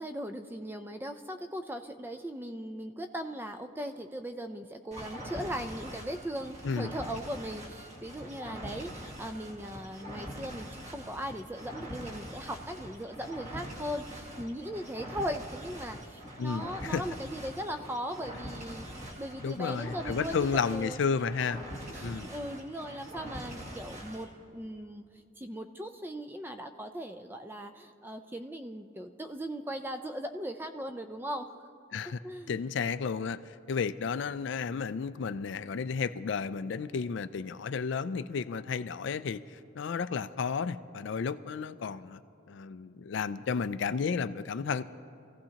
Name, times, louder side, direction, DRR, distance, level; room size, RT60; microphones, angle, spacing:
voice 1, 0.0-21.0 21.9-25.0 25.4-31.6 32.2-32.5, equal, 10° right, 7 dB, 0.4 m, -39 dB
sound 1, 4.9-24.3, equal, 35° right, 1.7 m, -43 dB
voice 2, 16.4-17.0 19.4-21.6 22.0-22.3 31.9-32.2 32.5-42.2 42.5-44.8, left 5 dB, 60° left, 13 dB, 0.3 m, -32 dB
25.5 x 15.5 x 2.9 m, 2.5 s
head